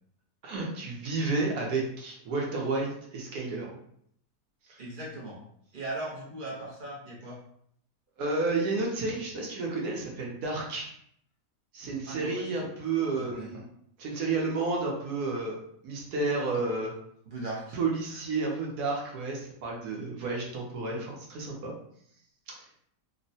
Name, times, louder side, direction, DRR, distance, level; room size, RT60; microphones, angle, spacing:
voice 1, 0.4-3.7 4.7-4.8 8.2-10.9 11.7-13.7 14.0-15.6 15.8-16.9 17.7-21.7 22.6-22.7, right 3 dB, 70° right, -2 dB, 1.1 m, -31 dB
voice 2, 4.8-5.4 5.7-7.4 12.1-12.4 13.2-13.5 16.5-16.6 17.3-17.8, right 2 dB, 55° right, -4 dB, 0.5 m, -38 dB
3.5 x 2.1 x 2.6 m, 0.68 s
omnidirectional pair, 1.8 m